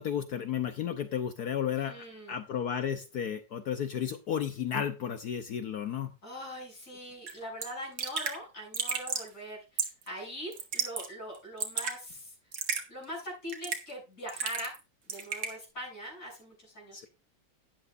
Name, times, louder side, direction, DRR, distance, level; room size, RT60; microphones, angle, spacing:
voice 1, 0.0-6.1 16.9-17.1, left 8 dB, 65° left, 8 dB, 1.2 m, -33 dB
voice 2, 1.9-2.4 6.2-12.3 12.9-14.7 15.1-17.1, equal, 45° left, -5 dB, 8.1 m, -42 dB
Raindrop / Drip, 7.3-7.4 7.6-7.7 8.0-8.4 8.7-9.3 9.8-10.1 10.5-11.1 11.4-12.0 12.5-12.8 13.5-13.9 14.3-14.8 15.1-15.5, right 6 dB, 85° right, 2.4 m, -33 dB
12.5 x 10.5 x 2.5 m, 0.29 s
omnidirectional pair, 2.0 m